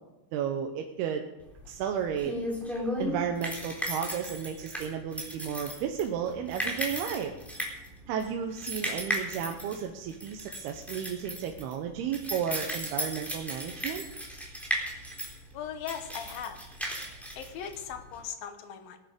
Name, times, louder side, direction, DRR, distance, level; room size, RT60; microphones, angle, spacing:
voice 1, 0.3-1.3 1.7-2.4 3.0-7.3 8.1-14.1, right 8 dB, 85° right, 3 dB, 2.9 m, -33 dB
sound 1, 1.5-18.2, equal, ahead, 2.9 m, -36 dB
voice 2, 15.5-16.6 17.4-19.0, left 8 dB, 70° left, 8 dB, 2.8 m, -38 dB
19.0 x 10.5 x 5.2 m, 0.97 s
omnidirectional pair, 4.5 m